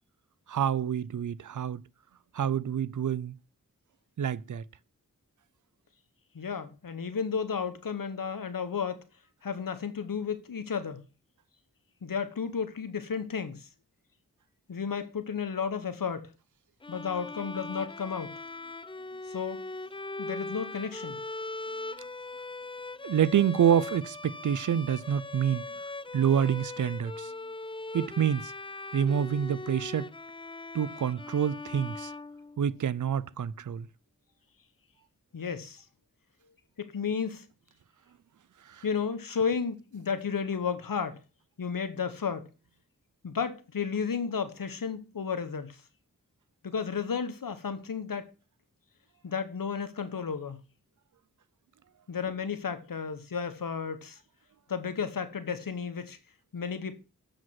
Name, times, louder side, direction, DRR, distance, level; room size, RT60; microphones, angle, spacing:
voice 1, 0.5-1.8 2.3-3.4 4.2-4.6 23.0-25.6 26.1-27.3 27.9-28.5 28.9-30.1 30.7-32.1 32.6-33.9 38.7-38.8, right 9 dB, 65° right, 0.5 m, -27 dB
voice 2, 6.3-9.0 9.4-11.0 12.0-13.7 14.7-16.3 16.9-18.4 19.3-19.6 20.2-21.2 35.3-35.8 36.8-37.4 38.8-41.2 41.6-42.5 43.2-45.8 46.6-48.3 49.2-50.6 52.1-54.2 54.7-56.2 56.5-56.9, left 6 dB, 85° left, 1.1 m, -33 dB
Bowed string instrument, 16.8-32.9, left 2 dB, 15° left, 0.4 m, -40 dB
7.6 x 5.0 x 5.7 m
cardioid pair, 40°, 33 cm